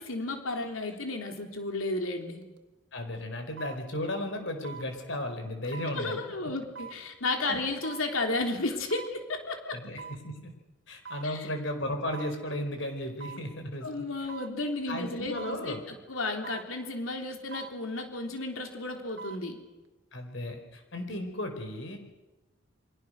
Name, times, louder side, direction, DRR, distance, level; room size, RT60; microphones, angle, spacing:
voice 1, 0.0-2.4 5.9-9.8 11.2-11.5 13.8-19.6, left 2 dB, 90° left, 4 dB, 3.4 m, -33 dB
sound 1, 2.4-2.6 3.6-3.8 4.6-4.9 5.7-6.0 6.7-7.0 7.8-8.1 8.9-9.1 10.0-10.2 11.0-11.3 12.1-12.4 13.2-13.5 14.3-14.5 15.4-15.6 16.4-16.7 17.5-17.8 18.9-19.4 19.8-19.9, right 6 dB, 60° right, 2.1 m, -43 dB
voice 2, 2.9-6.2 7.5-7.6 9.7-10.5 10.9-14.0 14.9-15.8 20.1-22.0, left 1 dB, 65° left, 6 dB, 4.7 m, -35 dB
29.5 x 24.0 x 6.6 m, 1.1 s
head